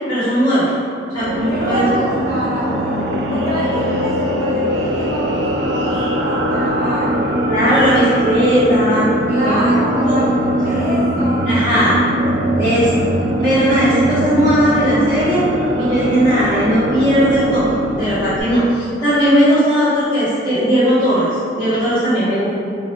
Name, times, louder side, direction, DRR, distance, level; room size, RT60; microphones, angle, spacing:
voice 1, 0.1-0.7 1.1-1.9 7.5-9.1 9.4-9.6 10.0-10.2 10.7-10.8 11.4-12.0 12.6-13.0 13.4-15.4 15.8-17.6 18.0-21.3 21.6-22.5, equal, 25° left, -19 dB, 1.4 m, -17 dB
sound 1, 1.1-18.4, equal, 70° right, 0.3 m, -20 dB
voice 2, 1.3-2.9 3.3-7.1 7.6-8.1 9.3-11.4, equal, 55° left, -17 dB, 1.4 m, -26 dB
2.9 x 2.8 x 3.2 m, 2.4 s
head